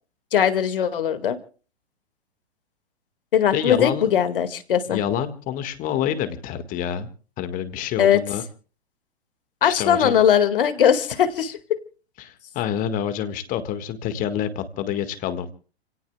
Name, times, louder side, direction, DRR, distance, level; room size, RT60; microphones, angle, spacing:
voice 1, 0.3-1.4 3.3-5.0 8.0-8.2 9.6-11.6, left 9 dB, 55° left, 9 dB, 2.1 m, -19 dB
voice 2, 3.5-4.2 4.9-7.1 7.4-8.4 9.6-10.2 12.2-15.5, left 9 dB, 25° left, 10 dB, 1.8 m, -27 dB
30.0 x 17.5 x 2.3 m, 0.40 s
figure-of-eight pair, 110°, 32 cm